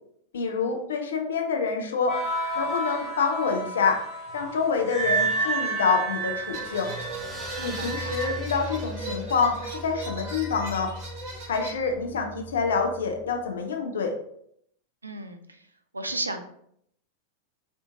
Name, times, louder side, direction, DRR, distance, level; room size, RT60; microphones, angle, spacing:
voice 1, 0.3-2.2 2.6-4.0 4.3-6.9 7.6-10.9 11.5-14.2, left 5 dB, 65° left, 3 dB, 0.4 m, -27 dB
sound 1, 2.1-8.4, right 3 dB, 20° left, 1.3 m, -30 dB
sound 2, 6.4-13.5, equal, 10° right, 0.5 m, -40 dB
sound 3, 6.5-11.7, right 2 dB, 45° right, 1.4 m, -39 dB
voice 2, 7.6-8.2 15.0-15.6 15.9-16.4, right 2 dB, 80° right, 7 dB, 0.3 m, -34 dB
3.6 x 2.4 x 2.5 m, 0.70 s
figure-of-eight pair, 90°, 0 cm